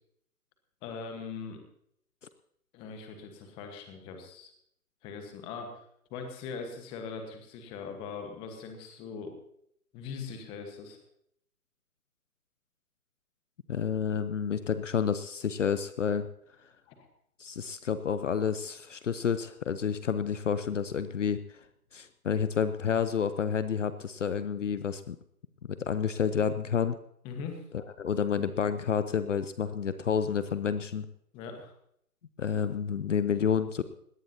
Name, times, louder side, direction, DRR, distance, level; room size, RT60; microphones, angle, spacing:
voice 1, 0.8-1.6 2.7-4.5 5.0-5.8 6.1-9.4 9.9-11.0 16.9-17.1 27.2-27.6 31.3-31.7, left 5 dB, 10° left, 5 dB, 1.3 m, -41 dB
voice 2, 13.7-16.3 17.4-21.6 21.9-25.2 25.6-27.0 28.0-31.1 32.4-33.8, left 7 dB, 55° left, 12 dB, 0.8 m, -29 dB
20.5 x 17.5 x 2.8 m, 0.71 s
figure-of-eight pair, 150°, 46 cm